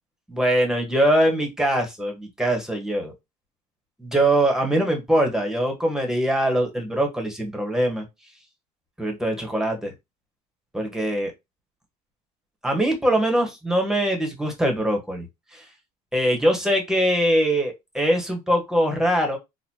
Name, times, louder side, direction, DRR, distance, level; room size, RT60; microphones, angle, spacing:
voice 1, 0.3-3.1 4.0-8.0 9.0-9.9 10.7-11.3 12.6-15.2 15.5-15.6 16.1-19.4, right 1 dB, 5° right, 1.4 m, -22 dB
4.0 x 2.6 x 3.0 m
supercardioid pair, 100°, 18 cm